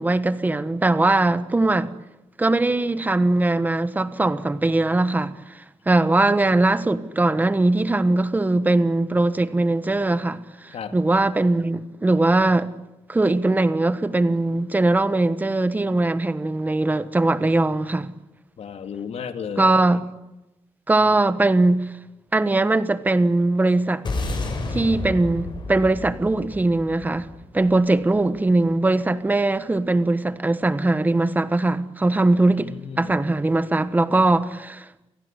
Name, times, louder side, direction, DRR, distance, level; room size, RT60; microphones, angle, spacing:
voice 1, 0.0-1.9 2.4-12.7 13.1-18.1 19.6-20.0 20.9-21.8 22.3-24.0 24.7-27.3 27.5-34.9, right 2 dB, 15° right, 1.3 m, -20 dB
voice 2, 18.6-19.7 32.6-33.2, left 7 dB, 75° left, 2.4 m, -34 dB
sound 1, 24.0-28.5, left 2 dB, 45° left, 7.4 m, -31 dB
28.5 x 18.0 x 10.0 m
wide cardioid pair, 160°, 11 cm